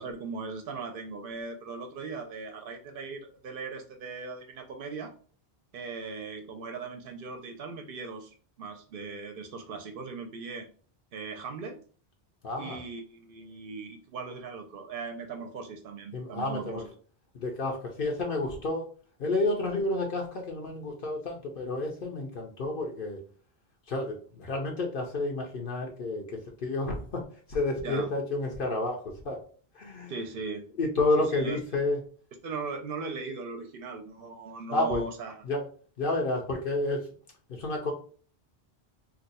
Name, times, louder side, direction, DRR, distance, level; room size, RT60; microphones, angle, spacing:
voice 1, 0.0-5.1 5.7-10.7 11.1-11.8 12.6-16.9 27.8-28.1 30.1-30.6 31.3-31.6 32.4-35.4, right 4 dB, 65° right, 5 dB, 0.7 m, -39 dB
voice 2, 12.4-12.8 16.1-16.8 17.3-18.9 19.2-23.2 23.9-27.2 27.5-29.4 29.7-30.1 30.8-32.0 34.7-35.0 35.4-35.6 36.0-37.1 37.5-37.9, left 2 dB, 60° left, 1 dB, 0.9 m, -30 dB
2.7 x 2.2 x 4.0 m, 0.42 s
omnidirectional pair, 1.1 m